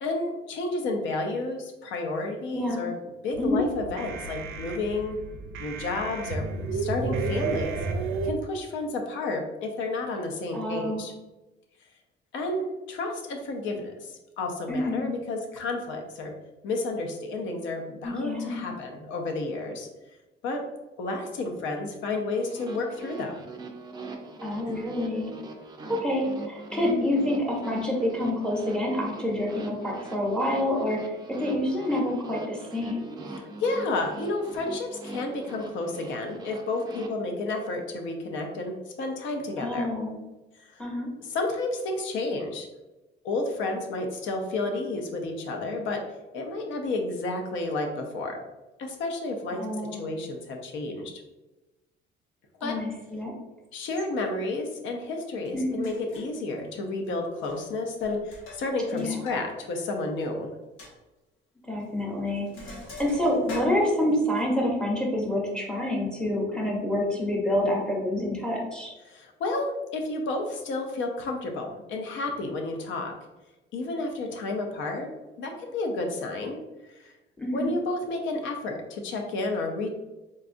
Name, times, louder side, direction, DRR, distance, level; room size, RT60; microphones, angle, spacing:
voice 1, 0.0-5.2 5.6-7.8 8.2-11.1 12.3-16.3 16.6-19.9 20.4-20.7 21.0-23.4 24.7-24.8 33.3-39.9 40.6-40.8 41.2-42.7 43.2-46.0 46.3-48.4 48.8-51.2 52.6-52.8 53.7-60.5 69.1-73.1 73.7-76.6 77.0-77.1 77.5-79.9, left 2 dB, 75° left, 3 dB, 0.6 m, -31 dB
sound 1, 3.3-8.3, right 4 dB, 85° right, 0.4 m, -32 dB
voice 2, 10.5-11.1 14.7-15.0 18.0-18.6 24.4-25.3 25.9-33.0 39.6-40.2 40.8-41.1 49.6-50.0 52.6-53.3 55.5-55.8 58.9-59.3 61.7-62.5 63.0-68.9 77.4-77.7, left 1 dB, 5° left, -3 dB, 0.7 m, -27 dB
sound 2, 22.3-37.1, right 2 dB, 20° right, 0.4 m, -42 dB
Sink (filling or washing), 55.4-55.5 55.8-56.4 57.3-57.7 58.0-59.4 59.7-59.8 60.2-60.3 60.8-60.9 61.8-62.0 62.3-64.4, left 1 dB, 90° left, 1.1 m, -42 dB
3.9 x 2.3 x 2.5 m, 1.1 s
cardioid pair, 145°, 20 cm